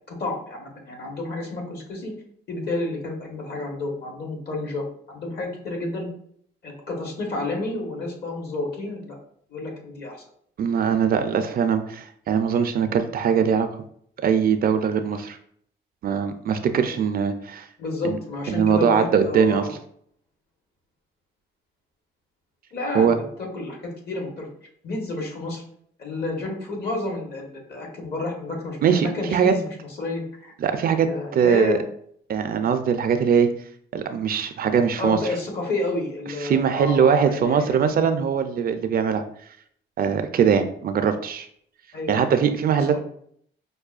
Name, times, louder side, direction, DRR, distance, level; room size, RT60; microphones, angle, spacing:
voice 1, 0.1-2.1 2.5-6.1 6.6-9.2 9.5-10.2 17.8-19.7 22.7-24.5 24.8-25.6 26.0-29.6 30.0-30.5 31.0-31.8 35.0-37.8 41.9-42.3 42.9-43.0, left 2 dB, 55° left, 0 dB, 1.1 m, -30 dB
voice 2, 10.6-13.7 14.2-15.4 16.0-17.7 18.0-18.2 18.5-19.7 22.9-23.2 28.8-29.5 30.6-31.8 32.3-33.5 33.9-35.2 36.4-39.2 40.0-41.5 42.1-43.0, right 7 dB, 50° right, 9 dB, 0.4 m, -21 dB
5.3 x 2.1 x 2.4 m, 0.65 s
cardioid pair, 90°, 20 cm